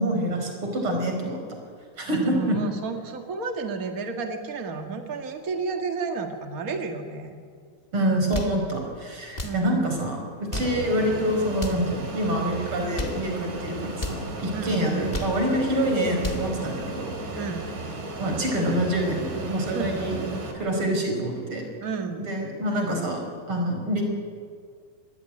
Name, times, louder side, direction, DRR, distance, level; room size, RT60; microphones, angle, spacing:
voice 1, 0.0-1.4 2.0-2.6 7.9-17.4 18.2-20.2 20.6-21.6 22.2-23.2 23.5-24.0, right 1 dB, 30° right, 3 dB, 5.2 m, -26 dB
voice 2, 2.0-7.4 9.4-10.0 14.5-14.8 17.4-17.7 19.7-19.9 20.2-20.4 21.8-22.3, right 4 dB, 90° right, 4 dB, 0.7 m, -31 dB
sound 1, 8.1-8.6 9.3-9.6 10.3-10.8 11.5-11.9 12.7-13.2 13.9-14.2 14.9-15.4 16.0-16.5, left 2 dB, 30° left, 0.7 m, -33 dB
Fixed-wing aircraft airplane, 10.5-20.5, right 2 dB, 70° right, 5.7 m, -35 dB
26.0 x 20.0 x 9.9 m, 2.1 s
omnidirectional pair, 4.9 m